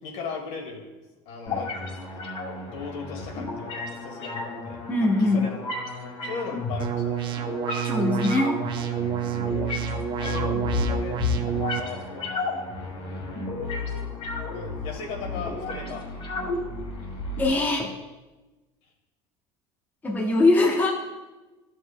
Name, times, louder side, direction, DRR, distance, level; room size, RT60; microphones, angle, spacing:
voice 1, 0.0-0.9 1.3-2.2 2.7-4.8 5.2-5.7 6.2-7.4 9.3-9.8 10.2-11.2 11.7-14.1 14.5-16.0, left 4 dB, 65° left, 1 dB, 2.0 m, -38 dB
sound 1, 1.5-17.5, left 3 dB, 45° left, 2.2 m, -33 dB
voice 2, 4.9-5.5 7.8-8.6 17.4-17.9 20.0-20.9, left 2 dB, 15° left, -1 dB, 0.9 m, -22 dB
sound 2, 6.8-11.8, right 9 dB, 40° right, 0.6 m, -29 dB
13.0 x 6.4 x 2.2 m, 1.2 s
cardioid pair, 140°, 13 cm